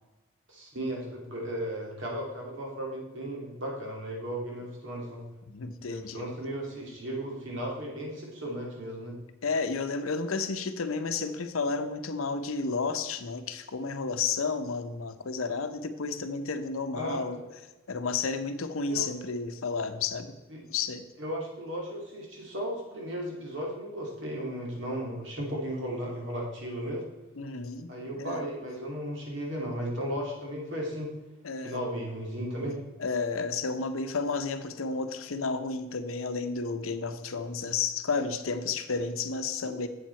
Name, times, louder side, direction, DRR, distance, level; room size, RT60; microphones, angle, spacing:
voice 1, 0.5-5.2 5.8-9.2 16.9-17.4 18.9-19.1 20.5-20.6 21.2-27.1 27.9-31.1 31.6-32.8, equal, 60° right, -2 dB, 2.5 m, -35 dB
voice 2, 5.5-6.3 9.4-17.4 17.9-20.4 20.7-21.0 27.4-27.9 28.2-28.5 31.4-31.7 33.0-39.9, left 4 dB, 80° left, 9 dB, 0.7 m, -32 dB
8.0 x 7.5 x 4.4 m, 1.1 s
head